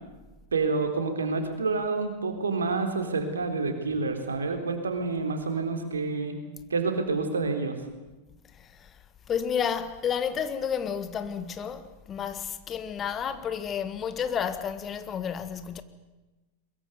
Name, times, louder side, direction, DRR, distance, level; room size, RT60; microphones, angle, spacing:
voice 1, 0.5-6.4 6.7-7.8, right 4 dB, 70° right, 3.8 m, -28 dB
voice 2, 9.3-15.8, left 7 dB, 25° left, 1.7 m, -31 dB
22.5 x 22.5 x 9.5 m
figure-of-eight pair, 90°, 0 cm